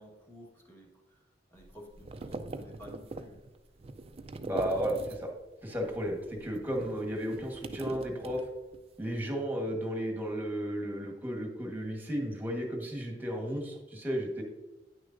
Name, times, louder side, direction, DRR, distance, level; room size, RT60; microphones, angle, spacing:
voice 1, 0.0-3.4, equal, 15° left, -1 dB, 1.4 m, -53 dB
sound 1, 1.6-5.5 5.8-8.9, right 2 dB, 35° right, 0.4 m, -42 dB
voice 2, 4.4-5.3 5.6-8.4 9.0-14.4, equal, 10° right, 1 dB, 1.3 m, -34 dB
9.6 x 6.2 x 2.6 m, 1.1 s
head